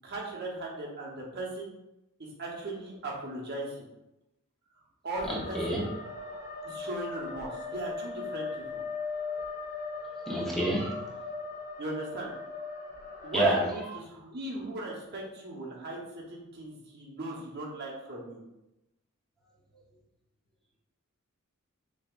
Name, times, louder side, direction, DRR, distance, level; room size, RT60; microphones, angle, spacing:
voice 1, 0.0-1.8 2.4-3.9 5.0-5.8 6.6-8.8 11.8-12.3 13.2-18.4, right 2 dB, 50° right, -2 dB, 1.0 m, -38 dB
sound 1, 5.1-13.4, left 4 dB, 45° left, 0.9 m, -39 dB
voice 2, 5.3-5.8 10.3-11.0 13.3-13.6, right 1 dB, ahead, -4 dB, 0.9 m, -28 dB
7.0 x 2.9 x 2.4 m, 0.91 s
head